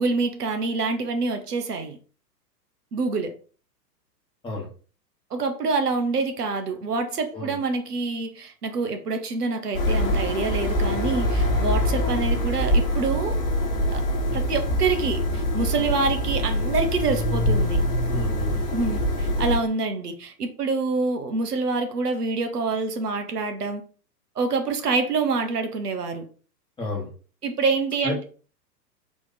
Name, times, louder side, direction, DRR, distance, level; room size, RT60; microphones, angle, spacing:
voice 1, 0.0-2.0 2.9-3.3 5.3-13.4 13.9-14.0 14.3-17.8 18.7-23.8 24.4-26.2 27.4-28.2, right 4 dB, 65° right, 1.0 m, -26 dB
sound 1, 9.7-19.6, equal, 30° left, 1.4 m, -24 dB
voice 2, 10.9-11.3 15.8-15.9 18.1-18.6 26.8-27.1 28.0-28.2, left 3 dB, 10° left, 1.2 m, -32 dB
4.2 x 3.0 x 3.9 m
figure-of-eight pair, 105°, 50 cm